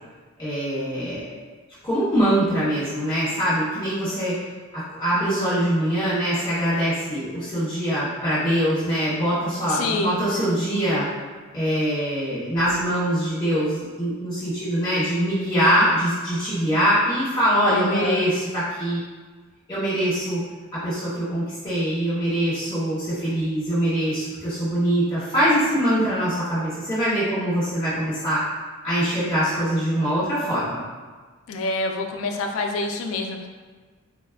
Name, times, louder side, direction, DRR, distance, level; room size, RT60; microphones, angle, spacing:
voice 1, 0.4-1.3 1.8-4.3 4.7-11.1 11.5-19.0 19.7-20.4 20.7-28.4 28.8-30.8, equal, 25° left, -14 dB, 1.2 m, -23 dB
voice 2, 9.7-10.2 17.7-18.3 31.5-33.5, left 3 dB, 65° left, 3 dB, 0.3 m, -27 dB
4.1 x 2.2 x 2.3 m, 1.4 s
head